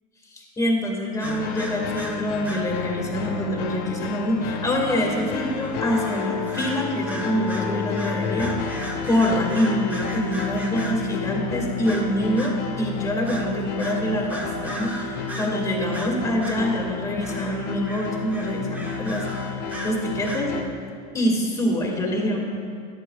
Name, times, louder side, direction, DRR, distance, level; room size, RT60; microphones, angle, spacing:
voice 1, 0.3-20.5 21.1-22.4, left 1 dB, 15° left, 0 dB, 1.9 m, -25 dB
sound 1, 1.2-20.6, left 5 dB, 50° left, 0.9 m, -31 dB
sound 2, 1.2-2.7 5.1-11.1 11.9-12.6 13.3-13.5 13.8-15.6 15.9-16.7 17.2-20.5, right 1 dB, 10° right, 1.1 m, -37 dB
13.5 x 11.5 x 2.3 m, 2.3 s
supercardioid pair, 125°, 21 cm